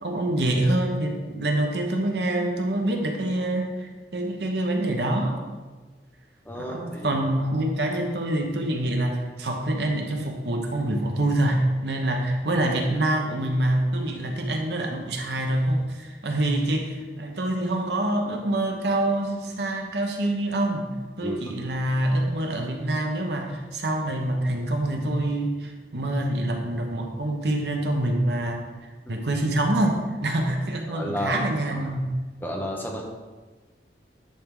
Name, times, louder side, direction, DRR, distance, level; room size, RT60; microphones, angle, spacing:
voice 1, 0.0-5.4 6.7-20.9 21.2-32.2, right 1 dB, 70° right, 3 dB, 1.0 m, -26 dB
voice 2, 6.4-7.2 21.2-21.6 29.1-29.2 30.9-31.4 32.4-33.1, left 1 dB, 10° left, -1 dB, 0.9 m, -32 dB
10.0 x 4.6 x 3.8 m, 1.3 s
head